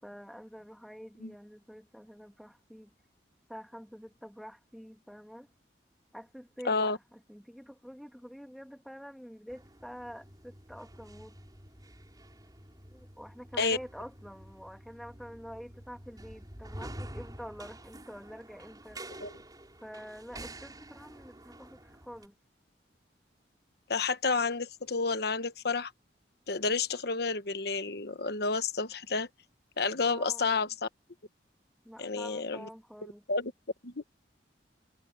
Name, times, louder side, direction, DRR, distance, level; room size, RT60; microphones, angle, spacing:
voice 1, 0.0-2.9 3.5-5.5 6.1-11.3 12.9-19.2 19.8-22.3 30.0-30.7 31.8-33.2, equal, ahead, 2.1 m, -47 dB
voice 2, 6.6-7.0 13.6-13.8 19.2-19.3 23.9-25.9 26.5-29.3 29.8-30.7 32.0-32.7 33.3-33.5 33.8-34.0, left 4 dB, 65° left, 1.1 m, -30 dB
sound 1, 9.5-22.3, right 1 dB, 25° right, 5.9 m, -48 dB
head